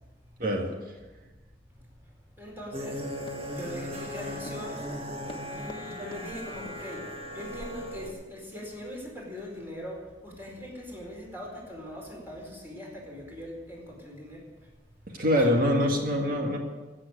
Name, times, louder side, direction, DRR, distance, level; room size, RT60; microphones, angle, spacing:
voice 1, 0.4-0.7 15.1-16.6, equal, 55° right, 2 dB, 2.0 m, -24 dB
voice 2, 2.0-3.1 3.5-4.9 5.5-14.7 15.4-15.5, equal, 15° right, -2 dB, 4.6 m, -41 dB
sound 1, 2.7-8.1, equal, 35° right, 1.9 m, -37 dB
Run, 2.8-5.8 6.1-6.3 6.7-6.9 7.4-7.5 8.1-8.2, left 1 dB, 30° left, 1.4 m, -46 dB
15.5 x 7.7 x 9.3 m, 1.2 s
head